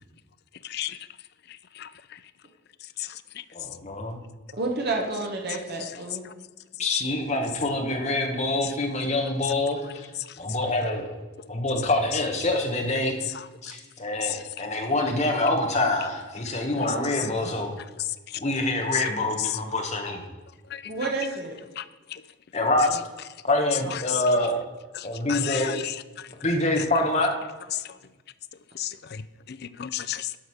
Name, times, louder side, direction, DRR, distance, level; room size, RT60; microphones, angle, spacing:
voice 1, 3.5-4.2 6.8-10.1 10.4-11.1 11.5-13.2 13.6-17.7 18.4-20.2 22.5-23.0 23.4-24.6 25.0-25.7 26.4-27.3, left 2 dB, 30° left, 2 dB, 1.4 m, -26 dB
voice 2, 4.5-6.2 16.7-17.0 20.8-21.6 23.8-24.4, right 3 dB, 45° right, 1 dB, 1.4 m, -31 dB
voice 3, 25.0-26.0 28.8-29.2 29.5-30.3, left 11 dB, 50° left, 15 dB, 0.4 m, -32 dB
11.5 x 5.2 x 6.4 m, 1.2 s
head